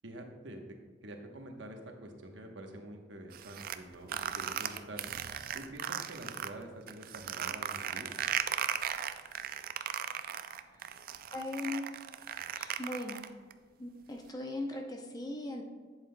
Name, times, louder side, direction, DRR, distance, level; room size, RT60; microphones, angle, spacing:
voice 1, 0.0-0.8 1.0-5.0 5.5-8.1, right 1 dB, 80° right, 3 dB, 1.0 m, -47 dB
sound 1, 3.3-6.5 6.9-13.5, right 9 dB, 50° right, 0.3 m, -36 dB
voice 2, 10.0-10.3 10.7-10.9 11.3-11.9 12.5-13.2 13.8-15.6, left 2 dB, 20° left, 2 dB, 0.6 m, -39 dB
11.0 x 7.5 x 2.2 m, 1.5 s
head